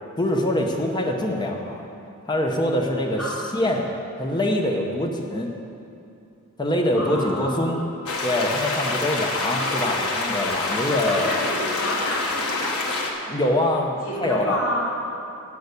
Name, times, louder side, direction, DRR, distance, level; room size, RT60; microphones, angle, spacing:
voice 1, 0.2-1.9 2.3-3.2 3.5-5.5 6.6-7.8 8.2-11.4 13.3-14.6, left 1 dB, 20° left, 1 dB, 0.8 m, -24 dB
voice 2, 7.0-7.7 11.1-13.0 14.0-14.8, left 1 dB, 65° left, -12 dB, 2.5 m, -30 dB
sound 1, 8.1-13.1, left 3 dB, 80° left, 1.3 m, -26 dB
8.3 x 6.7 x 8.1 m, 2.6 s
head